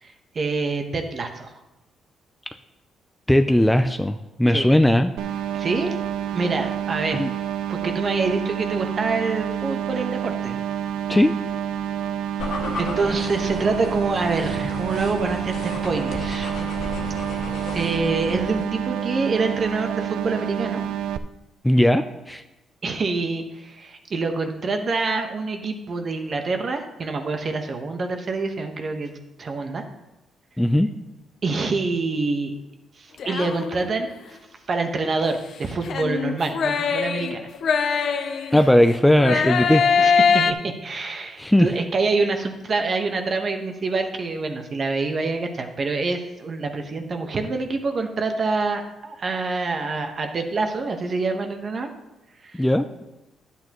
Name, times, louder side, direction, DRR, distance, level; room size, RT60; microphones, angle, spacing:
voice 1, 0.0-1.5 4.5-4.7 5.5-5.9 6.3-7.3 7.7-10.6 12.8-16.5 17.7-20.8 22.8-29.1 29.4-29.8 31.4-32.5 33.0-34.4 34.7-37.5 37.8-38.5 39.3-39.5 40.0-51.9 52.4-52.6, right 3 dB, 45° right, 5 dB, 1.2 m, -26 dB
voice 2, 3.3-5.1 7.1-7.3 11.1-11.3 21.6-22.4 30.6-30.9 38.5-39.8 41.4-41.7 52.5-52.8, left 1 dB, 5° left, 8 dB, 0.4 m, -18 dB
sound 1, 5.2-21.2, right 10 dB, 85° right, 0.4 m, -28 dB
sound 2, 12.4-18.7, left 2 dB, 85° left, 1.7 m, -34 dB
sound 3, 33.2-34.1 35.9-38.8 39.2-40.5, left 6 dB, 60° left, 0.6 m, -22 dB
11.0 x 8.4 x 3.0 m, 0.99 s
cardioid pair, 90°, 0 cm